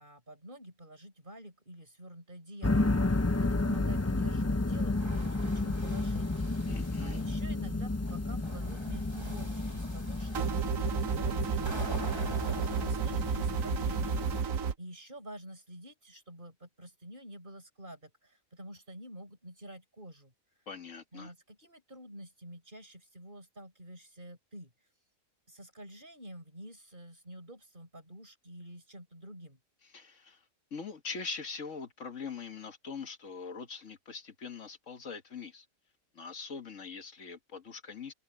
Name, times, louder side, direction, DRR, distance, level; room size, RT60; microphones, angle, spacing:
voice 1, 0.0-14.5 14.8-20.3 21.1-24.7 25.5-29.6, right 1 dB, 35° right, 6.1 m, -49 dB
sound 1, 2.6-14.4, left 2 dB, 20° left, 0.5 m, -32 dB
sound 2, 4.8-7.4 8.0-12.9, right 1 dB, 20° right, 2.3 m, -47 dB
voice 2, 6.7-7.2 20.7-21.3 29.9-30.4 30.7-35.7 36.1-38.1, left 5 dB, 60° left, 1.9 m, -42 dB
sound 3, 10.3-14.7, right 6 dB, 75° right, 1.3 m, -32 dB
omnidirectional pair, 1.4 m